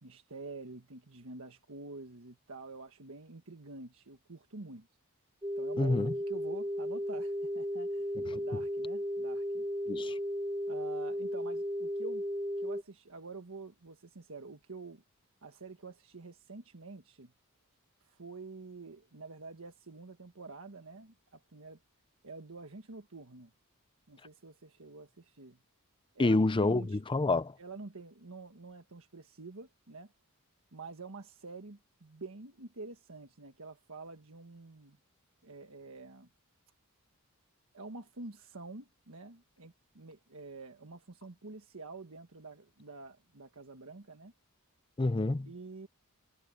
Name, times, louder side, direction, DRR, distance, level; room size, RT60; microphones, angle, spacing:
voice 1, 0.0-4.9 5.6-8.1 8.4-9.7 10.7-12.2 12.6-15.0 15.4-17.3 18.0-21.8 22.2-23.5 24.1-25.6 26.1-27.0 27.6-30.1 30.7-35.0 35.4-36.3 37.7-44.3 45.4-45.9, right 3 dB, 65° right, 1.5 m, -48 dB
sound 1, 5.4-12.8, equal, 15° right, 1.3 m, -35 dB
voice 2, 5.8-6.1 8.3-8.4 9.9-10.2 26.2-27.5 45.0-45.5, left 2 dB, 25° left, 0.5 m, -28 dB
head